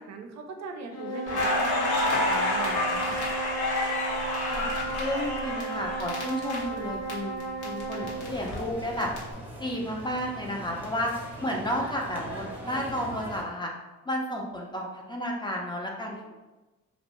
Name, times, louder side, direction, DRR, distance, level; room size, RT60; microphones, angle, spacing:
voice 1, 0.0-3.2 16.3-16.4, right 4 dB, 65° right, 4 dB, 0.4 m, -40 dB
sound 1, 0.9-8.3, right 2 dB, 60° left, 0.6 m, -34 dB
Crackle, 1.3-7.1 7.4-9.2, left 2 dB, 85° left, 0.9 m, -29 dB
voice 2, 5.0-9.1 9.6-11.1 11.4-13.7 14.1-16.3, equal, 15° left, -1 dB, 0.4 m, -32 dB
sound 2, 8.0-13.4, right 1 dB, 5° right, 0.8 m, -40 dB
2.5 x 2.0 x 2.8 m, 1.1 s
cardioid pair, 90°, 30 cm